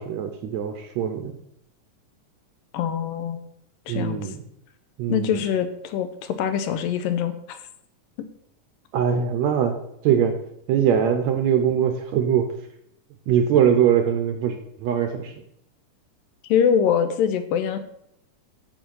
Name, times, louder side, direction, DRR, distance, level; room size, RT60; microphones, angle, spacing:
voice 1, 0.0-1.3 3.9-4.4 5.0-5.4 8.9-9.8 10.0-10.4 10.7-12.5 13.3-15.3, right 8 dB, 75° right, 6 dB, 1.8 m, -22 dB
voice 2, 2.7-3.4 3.9-4.3 5.1-7.6 16.5-17.8, left 8 dB, 90° left, 9 dB, 2.6 m, -23 dB
7.8 x 7.1 x 5.5 m, 0.74 s
omnidirectional pair, 3.9 m